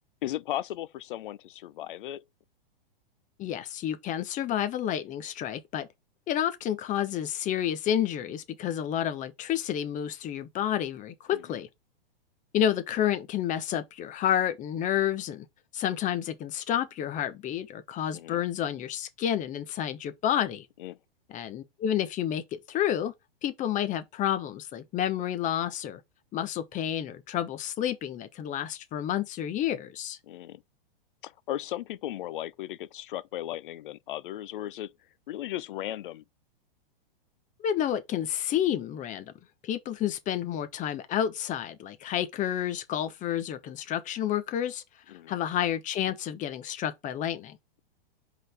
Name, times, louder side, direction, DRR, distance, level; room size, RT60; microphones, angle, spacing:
voice 1, 0.2-2.2 11.3-11.6 18.1-18.4 20.8-21.0 30.2-30.6 31.2-34.9 35.3-36.2 45.1-45.4, left 13 dB, 60° left, 0.7 m, -36 dB
voice 2, 3.4-5.9 6.3-11.7 12.5-15.4 15.7-20.7 21.3-23.1 23.4-26.0 26.3-30.2 37.6-39.3 39.6-44.8 45.3-47.6, left 10 dB, 25° left, 1.1 m, -30 dB
5.2 x 4.0 x 4.9 m
hypercardioid pair, 125°, 29 cm